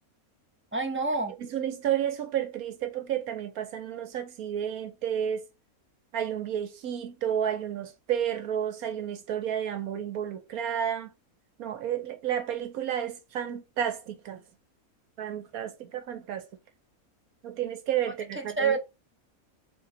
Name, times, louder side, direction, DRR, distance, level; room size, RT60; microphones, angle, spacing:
voice 1, 0.7-1.3 18.4-18.8, right 4 dB, 15° right, 0.5 m, -27 dB
voice 2, 1.4-5.4 6.1-11.1 11.6-14.4 15.2-16.5 17.4-18.8, right 9 dB, 80° right, 1.2 m, -31 dB
3.8 x 2.9 x 4.0 m
omnidirectional pair, 1.5 m